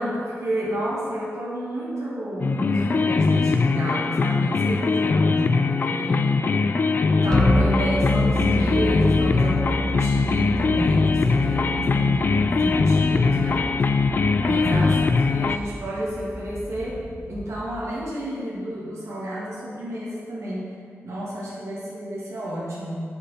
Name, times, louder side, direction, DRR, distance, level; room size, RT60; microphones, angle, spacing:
voice 1, 0.0-6.5 7.1-13.7 14.4-17.0 17.3-20.7 21.0-23.0, right 1 dB, 70° right, -8 dB, 2.3 m, -30 dB
sound 1, 2.4-15.6, left 4 dB, 40° left, 0.3 m, -21 dB
sound 2, 7.3-17.3, equal, 15° left, 1.1 m, -28 dB
sound 3, 7.4-17.6, right 1 dB, 15° right, 2.3 m, -40 dB
7.8 x 6.8 x 5.8 m, 2.3 s
wide cardioid pair, 175°, 5 cm